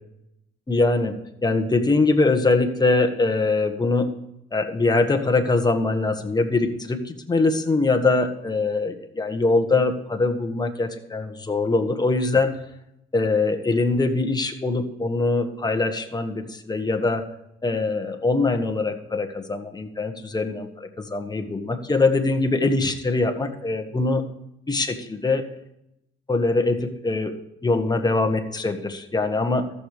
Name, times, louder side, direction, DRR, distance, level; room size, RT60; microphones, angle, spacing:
voice 1, 0.7-1.2 1.4-4.1 4.5-12.5 13.1-17.3 17.6-24.2 24.7-25.4 26.3-29.7, left 3 dB, 20° left, 5 dB, 1.5 m, -23 dB
14.0 x 6.9 x 4.9 m, 0.82 s
cardioid pair, 90°, 20 cm